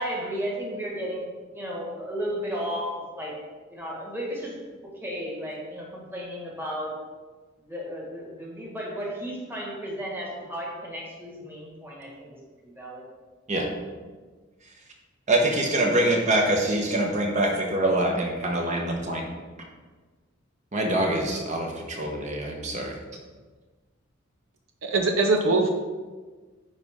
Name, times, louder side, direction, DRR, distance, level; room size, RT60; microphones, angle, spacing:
voice 1, 0.0-3.3 3.7-4.6 4.9-6.9 7.6-13.0, equal, 10° right, -4 dB, 1.6 m, -34 dB
voice 2, 15.3-19.2 20.7-23.0, right 1 dB, 35° right, 0 dB, 1.1 m, -24 dB
voice 3, 24.8-25.7, right 3 dB, 75° right, 3 dB, 0.7 m, -22 dB
9.8 x 4.1 x 3.7 m, 1.4 s
head